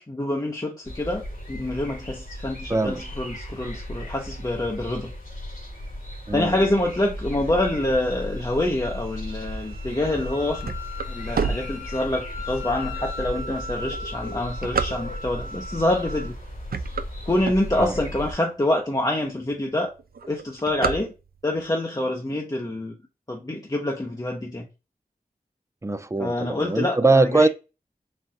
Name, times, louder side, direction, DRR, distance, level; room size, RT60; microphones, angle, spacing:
voice 1, 0.1-5.1 6.3-10.7 11.1-16.4 17.3-19.9 20.3-21.1 21.4-22.9 23.3-24.7 26.2-27.5, left 1 dB, 25° left, 0.7 m, -26 dB
sound 1, 0.8-18.3, left 1 dB, 60° left, 1.6 m, -36 dB
Wind instrument woodwind instrument, 8.1-16.3, left 2 dB, 75° left, 2.0 m, -39 dB
sound 2, 10.2-12.4 13.0-13.1 13.8-15.5 16.1-16.3 16.6-18.2 18.7-18.8 19.0-19.1 19.4-19.7 20.0-21.6, right 5 dB, 90° right, 0.4 m, -29 dB
voice 2, 25.8-27.5, right 3 dB, 20° right, 0.4 m, -21 dB
4.2 x 2.5 x 3.6 m
wide cardioid pair, 75°, 15 cm